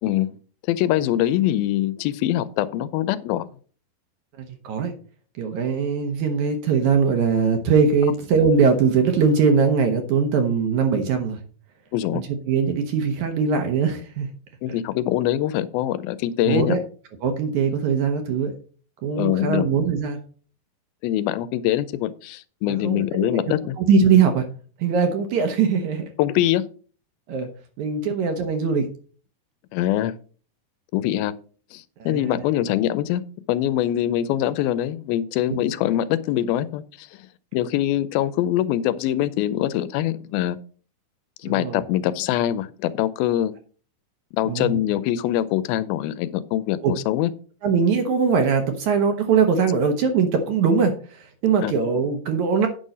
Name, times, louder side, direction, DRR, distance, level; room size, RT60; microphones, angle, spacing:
voice 1, 0.0-0.3 0.7-3.5 11.9-12.2 14.6-16.8 19.1-19.7 21.0-23.8 26.2-26.7 29.7-30.1 30.9-31.3 31.7-33.2 33.5-37.1 37.5-40.6 41.4-43.5 44.3-47.3 51.6-51.7, left 13 dB, 90° left, 15 dB, 2.4 m, -23 dB
voice 2, 4.4-4.9 5.4-11.4 12.1-14.3 16.5-16.8 17.2-18.5 19.0-20.2 22.7-23.4 23.8-24.5 24.8-26.1 27.3-27.5 27.8-28.9 32.1-32.4 41.4-41.8 44.5-44.8 46.8-46.9 47.6-52.7, right 5 dB, 70° right, 6 dB, 2.0 m, -21 dB
8.9 x 5.5 x 5.2 m, 0.41 s
omnidirectional pair, 4.2 m